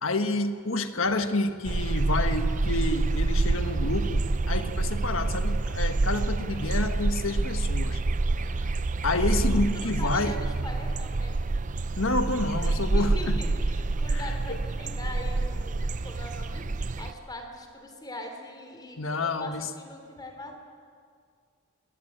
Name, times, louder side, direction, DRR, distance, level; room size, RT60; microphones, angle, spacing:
voice 1, 0.0-8.0 8.6-8.7 9.0-10.4 12.0-13.4 14.1-14.6 19.0-19.7, left 2 dB, 70° left, 8 dB, 1.4 m, -29 dB
sound 1, 1.6-17.1, right 2 dB, 40° right, 0.5 m, -27 dB
voice 2, 8.3-8.6 9.7-11.4 12.6-20.6, left 1 dB, 20° left, 4 dB, 3.3 m, -42 dB
21.0 x 20.0 x 8.7 m, 2.1 s
head